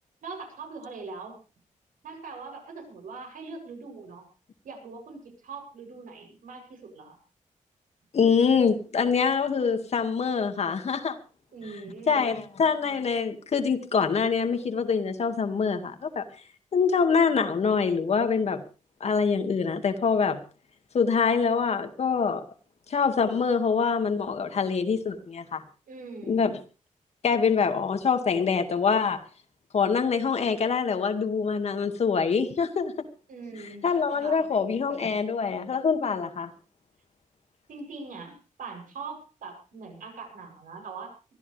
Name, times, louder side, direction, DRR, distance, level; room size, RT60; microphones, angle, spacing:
voice 1, 0.2-1.4 2.0-4.3 4.6-7.2 11.5-12.4 25.9-26.4 33.3-34.4 37.7-41.3, right 4 dB, 85° right, 7.8 m, -42 dB
voice 2, 8.1-11.2 12.1-16.2 16.7-18.6 19.0-20.4 20.9-22.4 22.9-25.6 26.3-26.6 27.2-29.2 29.7-32.9 33.8-36.5, left 5 dB, 50° left, 2.1 m, -25 dB
23.5 x 14.0 x 3.4 m
wide cardioid pair, 165°, 13 cm